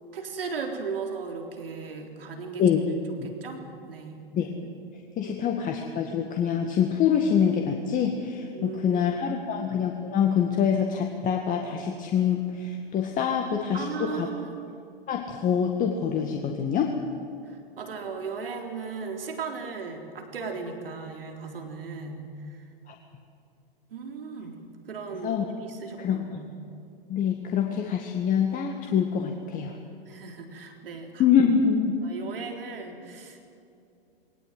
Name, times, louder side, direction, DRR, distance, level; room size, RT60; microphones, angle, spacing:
voice 1, 0.1-2.6 3.1-4.2 5.2-5.3 8.5-9.0 9.3-9.6 13.3-13.4 13.7-14.6 17.5-22.3 23.9-24.5 24.9-25.3 25.6-26.5 30.1-31.4 32.0-33.5, right 5 dB, 70° right, 3 dB, 3.9 m, -37 dB
voice 2, 5.2-14.3 15.1-16.9 25.2-25.4 26.0-26.4 27.1-29.7 31.2-32.0, left 7 dB, 25° left, 2 dB, 1.9 m, -25 dB
21.0 x 18.5 x 9.4 m, 2.5 s
hypercardioid pair, 110°, 29 cm